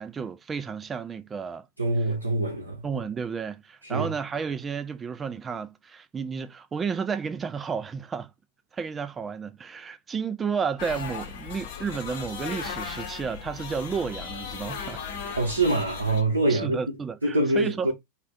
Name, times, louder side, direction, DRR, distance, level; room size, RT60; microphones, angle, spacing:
voice 1, 0.0-1.7 2.8-8.3 8.7-15.0 16.5-17.9, right 6 dB, 20° right, 0.3 m, -32 dB
voice 2, 1.8-2.8 3.8-4.1 15.4-16.8 17.2-17.9, right 2 dB, 75° right, 0.6 m, -24 dB
sound 1, 10.8-16.2, left 7 dB, 55° left, 0.8 m, -37 dB
2.5 x 2.2 x 3.4 m
figure-of-eight pair, 90°, 0 cm